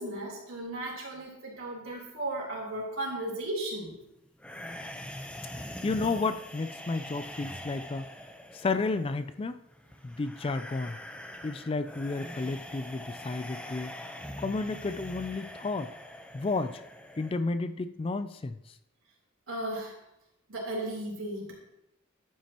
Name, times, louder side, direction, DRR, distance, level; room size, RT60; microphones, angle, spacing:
voice 1, 0.0-3.9 19.5-20.0 20.5-21.5, right 1 dB, 70° right, -2 dB, 3.6 m, -35 dB
sound 1, 4.4-17.4, left 1 dB, 5° left, 0.8 m, -43 dB
voice 2, 5.8-8.1 8.5-9.6 10.0-11.0 11.4-13.9 14.4-15.9 16.3-16.8 17.2-18.6, left 3 dB, 25° left, 12 dB, 0.4 m, -32 dB
11.5 x 9.0 x 3.0 m, 0.83 s
head